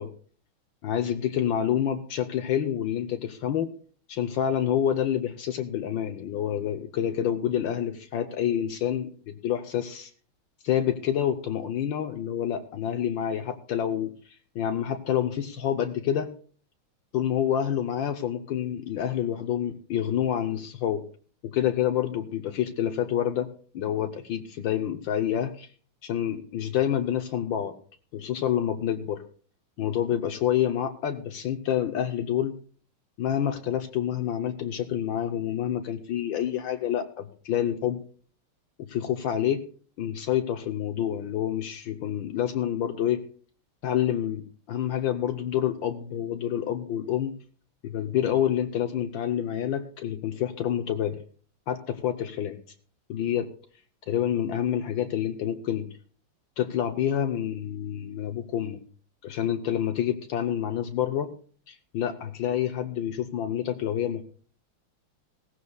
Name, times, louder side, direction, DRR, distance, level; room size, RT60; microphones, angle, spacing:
voice 1, 0.8-3.7 4.1-10.1 10.6-16.3 17.1-21.0 21.4-23.5 23.7-25.7 26.0-27.7 28.1-29.2 29.8-32.5 33.2-38.0 38.9-39.6 40.0-43.2 43.8-47.3 47.8-51.2 51.7-52.6 53.1-53.5 54.1-55.9 56.6-58.8 59.2-61.3 61.7-64.2, left 10 dB, 70° left, 7 dB, 1.4 m, -28 dB
18.0 x 15.0 x 2.3 m, 0.43 s
omnidirectional pair, 2.3 m